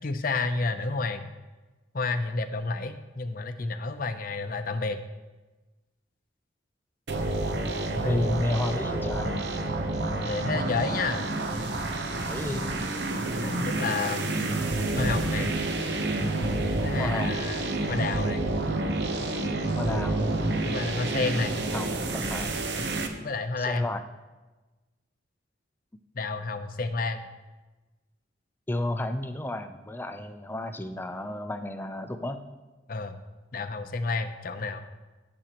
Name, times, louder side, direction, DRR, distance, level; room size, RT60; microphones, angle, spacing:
voice 1, 0.0-1.3 1.9-5.0 8.0-8.6 10.2-11.3 13.4-14.4 15.0-15.5 16.8-18.5 20.6-21.6 23.2-23.9 26.1-27.3 32.9-33.2 33.5-34.9, left 3 dB, 50° left, 9 dB, 0.7 m, -30 dB
sound 1, 7.1-23.1, right 2 dB, 65° right, 0.9 m, -29 dB
voice 2, 7.6-9.3 12.3-12.7 17.0-17.4 19.8-20.3 21.7-22.6 23.6-24.0 28.7-32.4, left 1 dB, 10° left, 8 dB, 0.5 m, -33 dB
17.0 x 6.2 x 3.0 m, 1.2 s
head